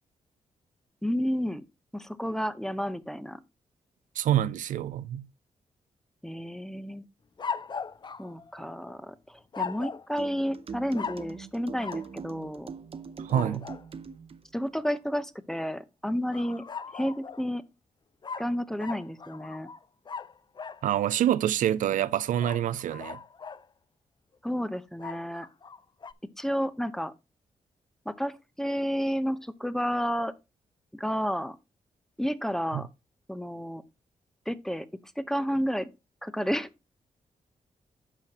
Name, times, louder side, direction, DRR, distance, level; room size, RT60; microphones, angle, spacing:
voice 1, 1.0-1.6 1.9-3.4 6.2-7.1 8.2-12.7 13.3-13.6 14.5-16.6 16.9-17.6 18.4-19.7 24.4-25.5 26.4-27.1 28.1-30.3 30.9-31.6 32.2-32.9 33.3-33.8 34.5-34.9 35.2-35.9 36.2-36.7, equal, 5° left, 0.7 m, -31 dB
voice 2, 4.2-5.3 13.2-13.7 20.8-23.2 32.7-32.9, right 11 dB, 85° right, 0.4 m, -26 dB
sound 1, 7.4-9.0 9.5-10.1 10.9-11.3 11.8-12.1 13.3-13.8 16.3-17.5 18.2-20.8 22.4-23.7 25.0-26.1, left 6 dB, 35° left, 0.4 m, -39 dB
sound 2, 10.2-14.4, right 6 dB, 45° right, 0.7 m, -42 dB
9.8 x 5.8 x 2.9 m
cardioid pair, 70°, 13 cm